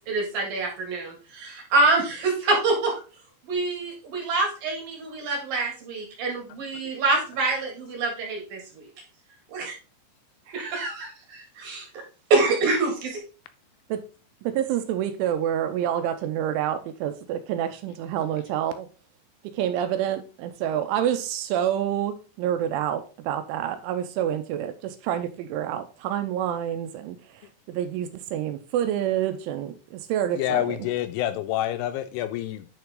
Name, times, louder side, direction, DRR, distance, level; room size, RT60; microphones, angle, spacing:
voice 1, 0.1-3.0 3.5-8.4 9.5-9.7 10.5-11.8 12.3-13.2, right 3 dB, 55° right, 3.2 m, -25 dB
voice 2, 14.4-18.9 19.4-30.9, right 10 dB, 80° right, 3.0 m, -28 dB
voice 3, 30.4-32.7, left 12 dB, 85° left, 2.8 m, -27 dB
9.4 x 4.6 x 3.8 m
omnidirectional pair, 5.7 m